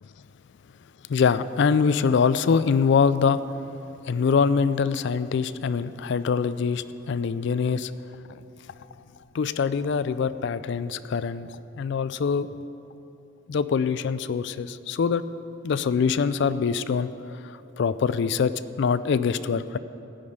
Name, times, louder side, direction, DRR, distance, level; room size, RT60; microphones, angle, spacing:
voice 1, 1.1-3.4 4.1-7.9 8.3-8.4 9.3-12.5 13.5-15.2 15.6-17.1 17.4-18.5 18.8-19.8, left 6 dB, 60° left, 14 dB, 0.3 m, -24 dB
15.0 x 5.2 x 9.5 m, 2.9 s
head